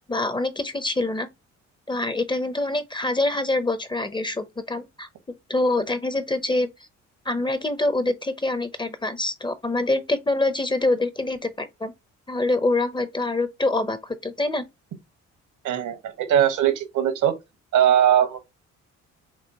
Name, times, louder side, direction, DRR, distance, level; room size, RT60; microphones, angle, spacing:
voice 1, 0.1-1.3 1.9-5.1 5.5-6.7 7.3-11.9 12.3-14.7, left 2 dB, 15° left, 0.7 m, -25 dB
voice 2, 15.6-17.3 17.7-18.4, right 10 dB, 75° right, 1.3 m, -20 dB
6.1 x 2.4 x 2.9 m
cardioid pair, 90°, 30 cm